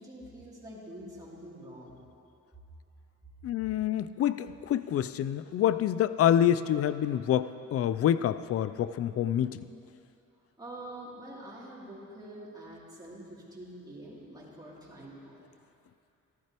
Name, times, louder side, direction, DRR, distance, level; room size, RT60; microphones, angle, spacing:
voice 1, 0.0-2.0 10.6-15.5, right 1 dB, 15° right, -7 dB, 2.9 m, -46 dB
voice 2, 3.4-9.6, left 10 dB, 50° left, 14 dB, 0.4 m, -27 dB
14.0 x 11.5 x 3.0 m, 2.7 s
cardioid pair, 90°, 30 cm